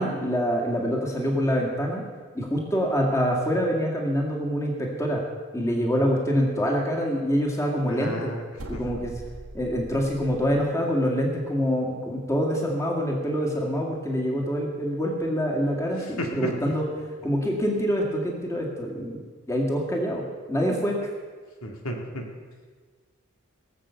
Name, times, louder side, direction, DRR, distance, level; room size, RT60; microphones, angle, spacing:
voice 1, 0.0-2.0 2.3-5.2 5.5-8.3 8.7-9.1 9.5-16.9 17.2-19.2 19.5-21.1, equal, 15° left, -1 dB, 2.0 m, -25 dB
voice 2, 7.9-8.4 8.7-8.8 16.2-16.5 21.6-22.2, equal, 85° left, 2 dB, 2.0 m, -32 dB
sound 1, 8.6-10.6, right 1 dB, 85° right, 1.9 m, -41 dB
18.0 x 7.6 x 7.0 m, 1.5 s
head